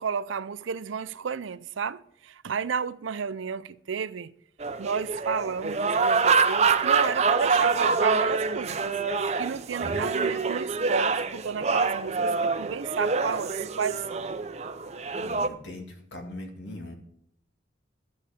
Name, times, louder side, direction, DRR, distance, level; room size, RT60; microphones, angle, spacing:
voice 1, 0.0-4.3 4.8-9.0 9.4-14.3, right 6 dB, 80° right, 0.5 m, -32 dB
sound 1, 4.6-15.5, right 4 dB, 35° right, 0.5 m, -26 dB
voice 2, 15.1-17.0, left 1 dB, 65° left, 2.2 m, -41 dB
12.5 x 9.5 x 5.1 m
head